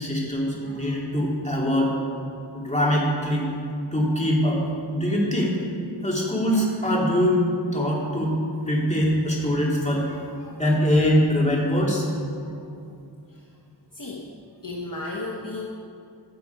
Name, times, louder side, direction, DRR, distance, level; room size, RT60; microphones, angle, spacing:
voice 1, 0.0-1.9 2.5-3.5 3.9-4.6 4.9-5.6 6.0-8.4 8.7-10.1 10.6-12.1, equal, 15° left, -4 dB, 2.8 m, -23 dB
voice 2, 13.9-14.3 14.6-15.7, left 2 dB, 45° left, -1 dB, 1.1 m, -33 dB
15.5 x 6.9 x 4.7 m, 2.5 s
wide cardioid pair, 55°, 47 cm